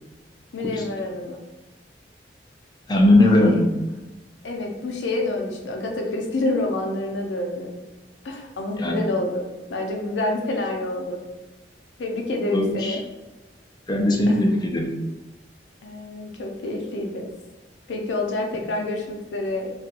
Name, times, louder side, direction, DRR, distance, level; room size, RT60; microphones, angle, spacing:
voice 1, 0.5-1.4 3.2-3.6 4.4-7.7 8.2-11.2 12.0-13.0 14.3-14.4 15.8-17.3 17.9-19.7, left 2 dB, 80° left, 2 dB, 0.5 m, -28 dB
voice 2, 2.9-3.7 8.8-9.0 12.5-13.0 13.9-14.9, left 1 dB, 25° left, 2 dB, 0.3 m, -18 dB
2.3 x 2.2 x 2.8 m, 1.1 s
head